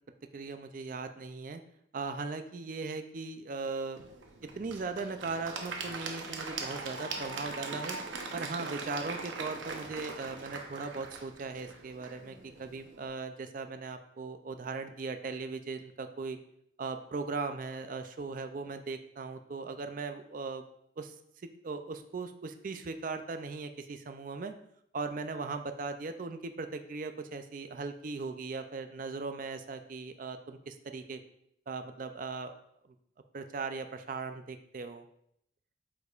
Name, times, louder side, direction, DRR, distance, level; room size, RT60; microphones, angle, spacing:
voice 1, 0.3-1.6 1.9-4.2 4.6-8.0 8.3-16.4 16.8-20.6 21.0-21.2 21.6-24.5 24.9-31.2 31.7-32.5 33.3-35.0, right 4 dB, 45° right, 8 dB, 0.4 m, -38 dB
Applause / Crowd, 4.0-13.0, right 3 dB, 75° right, 0.8 m, -41 dB
8.1 x 5.1 x 2.4 m, 0.72 s
head